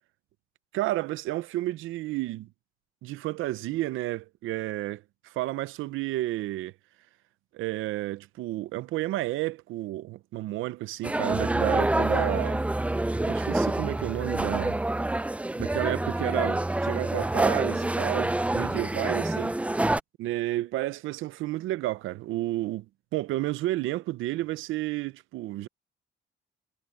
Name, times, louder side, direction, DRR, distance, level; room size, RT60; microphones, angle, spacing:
voice 1, 0.7-2.5 3.0-6.7 7.5-12.7 13.3-14.8 15.6-19.6 20.2-22.9 23.1-25.7, right 16 dB, 90° right, 0.7 m, -31 dB
sound 1, 11.0-20.0, right 1 dB, 5° right, 0.4 m, -27 dB
cardioid pair, 90°, 20 cm